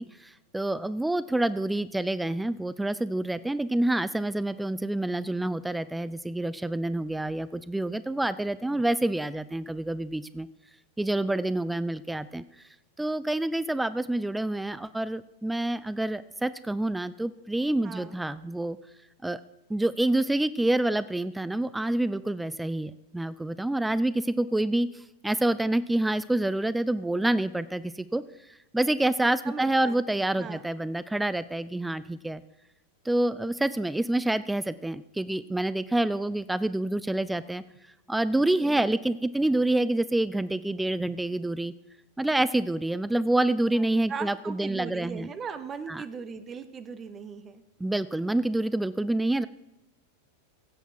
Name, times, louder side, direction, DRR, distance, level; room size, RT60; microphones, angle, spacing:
voice 1, 0.0-10.5 11.0-12.4 13.0-18.8 19.2-19.4 19.7-28.2 28.7-32.4 33.1-37.6 38.1-41.7 42.2-45.3 45.9-46.0 47.8-49.5, right 1 dB, 5° right, 16 dB, 0.3 m, -27 dB
voice 2, 17.8-18.2 29.5-30.6 38.5-39.0 43.7-43.8 44.1-47.6, right 5 dB, 25° right, 12 dB, 0.9 m, -39 dB
15.5 x 8.0 x 4.6 m, 0.96 s
figure-of-eight pair, 90°, 0 cm